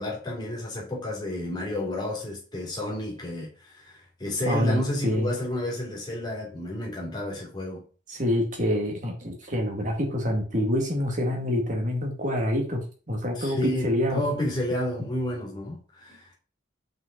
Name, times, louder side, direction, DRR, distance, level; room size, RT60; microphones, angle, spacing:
voice 1, 0.0-7.8 13.3-16.3, left 1 dB, 20° left, 3.0 m, -31 dB
voice 2, 4.5-5.3 8.1-14.2, left 1 dB, 45° right, 2.2 m, -26 dB
5.6 x 5.6 x 4.1 m
head